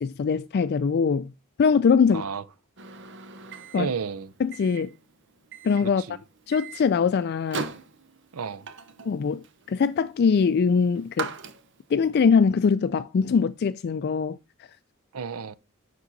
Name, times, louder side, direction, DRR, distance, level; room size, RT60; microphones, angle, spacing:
voice 1, 0.0-1.3 1.6-2.3 3.7-3.9 4.4-4.9 5.6-6.0 6.5-7.7 9.1-11.3 11.9-14.4, left 5 dB, 50° left, 0.3 m, -22 dB
voice 2, 2.1-2.4 3.8-4.3 5.8-6.2 8.3-8.7 15.1-15.6, right 6 dB, 85° right, 0.6 m, -32 dB
Microwave oven, 2.8-12.0, right 5 dB, 55° right, 0.9 m, -40 dB
7.3 x 6.1 x 4.0 m
head